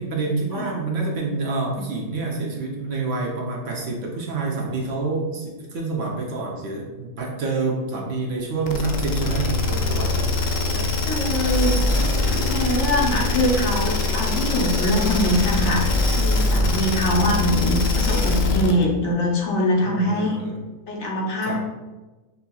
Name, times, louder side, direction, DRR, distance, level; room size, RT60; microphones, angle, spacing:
voice 1, 0.0-10.3 10.6-10.9 11.7-12.0 19.8-20.6 21.4-21.6, right 3 dB, 75° right, -1 dB, 1.1 m, -28 dB
sound 1, 8.7-18.8, left 3 dB, 90° left, 1.0 m, -22 dB
voice 2, 11.1-11.8 12.5-20.4 20.9-21.6, equal, 70° left, -1 dB, 1.1 m, -23 dB
5.6 x 2.8 x 2.3 m, 1.2 s
omnidirectional pair, 1.3 m